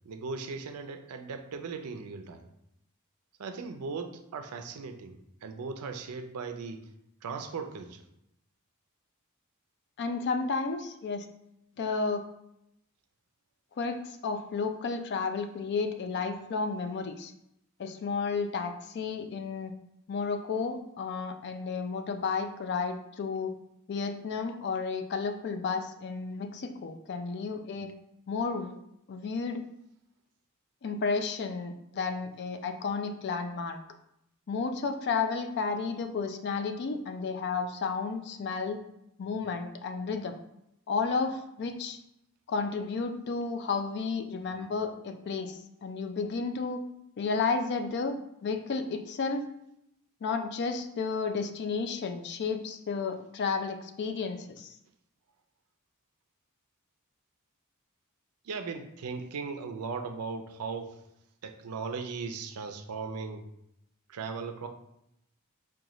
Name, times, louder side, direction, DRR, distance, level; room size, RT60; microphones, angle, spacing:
voice 1, 0.0-2.5 3.4-6.9 7.2-8.0 58.4-61.0 61.4-63.5 64.1-64.7, right 4 dB, 85° right, 7 dB, 0.4 m, -38 dB
voice 2, 10.0-11.3 11.8-12.2 13.8-17.3 17.8-19.7 20.1-23.5 23.9-27.9 28.3-28.8 29.1-29.6 30.8-33.8 34.5-38.8 39.2-40.4 40.9-42.0 42.5-46.8 47.2-49.4 50.2-54.8, left 4 dB, 50° left, 7 dB, 0.4 m, -32 dB
4.9 x 2.3 x 2.9 m, 0.80 s
head